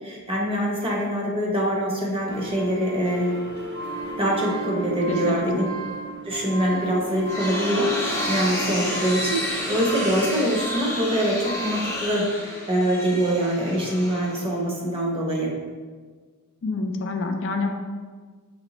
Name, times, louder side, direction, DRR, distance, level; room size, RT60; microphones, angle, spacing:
voice 1, 0.0-3.3 4.2-5.7 6.2-15.5, equal, 25° right, -2 dB, 0.7 m, -24 dB
sound 1, 2.3-10.3, right 3 dB, 50° right, 0.4 m, -36 dB
sound 2, 3.5-11.9, right 2 dB, 70° right, 0.9 m, -36 dB
voice 2, 5.1-5.7 16.6-17.7, left 3 dB, 55° left, 4 dB, 0.4 m, -27 dB
sound 3, 6.9-14.8, left 1 dB, 10° left, 0.6 m, -31 dB
5.1 x 3.2 x 2.9 m, 1.5 s
head